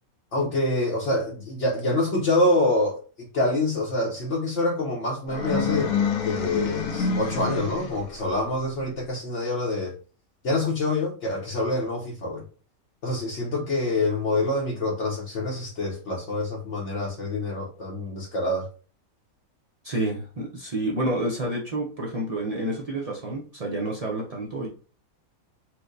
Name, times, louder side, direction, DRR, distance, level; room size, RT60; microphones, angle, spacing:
voice 1, 0.3-5.9 6.2-9.9 10.4-12.4 13.0-18.7, left 2 dB, 60° left, -4 dB, 1.0 m, -26 dB
sound 1, 5.3-8.2, left 6 dB, 80° left, 1.1 m, -27 dB
voice 2, 19.8-24.7, right 1 dB, 65° right, -3 dB, 0.3 m, -29 dB
4.4 x 2.1 x 2.5 m, 0.38 s
omnidirectional pair, 1.5 m